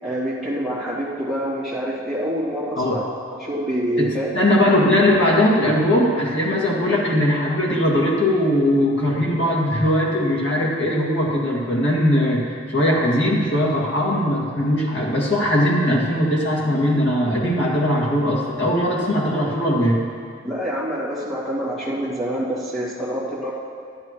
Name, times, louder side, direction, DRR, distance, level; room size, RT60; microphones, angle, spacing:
voice 1, 0.0-3.0 3.3-4.3 20.4-23.5, equal, ahead, -9 dB, 2.0 m, -26 dB
voice 2, 4.0-12.4 12.7-20.0, left 1 dB, 60° left, -4 dB, 2.0 m, -20 dB
12.0 x 11.5 x 3.0 m, 2.2 s
head